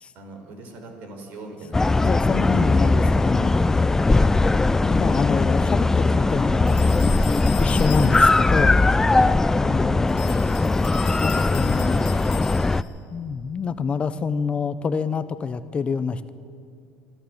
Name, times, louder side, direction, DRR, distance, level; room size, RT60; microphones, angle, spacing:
voice 1, 0.1-2.1 9.1-9.4, right 2 dB, 65° right, 4 dB, 4.7 m, -40 dB
sound 1, 1.7-12.8, left 3 dB, 15° left, 0.5 m, -19 dB
voice 2, 2.0-3.5 4.8-7.2 7.6-8.8 9.5-10.5 11.0-12.1 13.1-16.3, left 5 dB, 35° left, 13 dB, 0.9 m, -26 dB
sound 2, 6.7-8.6 10.1-13.0, left 16 dB, 75° left, 1.3 m, -39 dB
26.5 x 12.5 x 7.9 m, 2.4 s
supercardioid pair, 80°, 3 cm